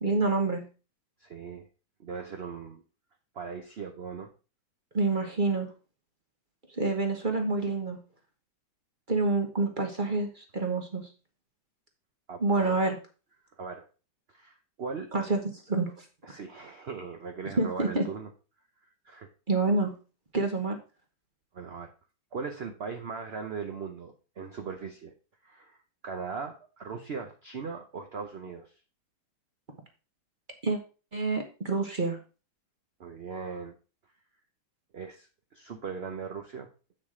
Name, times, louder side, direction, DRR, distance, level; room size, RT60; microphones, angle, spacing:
voice 1, 0.0-0.6 4.9-5.7 6.8-8.0 9.1-11.1 12.4-13.0 15.1-15.9 17.6-18.1 19.5-19.9 20.3-20.8 30.6-30.8 31.1-32.2, right 3 dB, 30° right, 4 dB, 1.0 m, -27 dB
voice 2, 1.2-1.7 2.0-2.8 3.3-4.3 12.3-12.8 13.6-13.9 14.3-15.1 16.2-18.3 19.0-19.3 21.5-21.9 22.3-25.1 25.4-25.8 26.0-28.7 33.0-33.7 34.9-35.3 35.5-36.7, right 5 dB, 55° right, 4 dB, 0.7 m, -39 dB
8.2 x 6.5 x 3.7 m, 0.34 s
omnidirectional pair, 2.2 m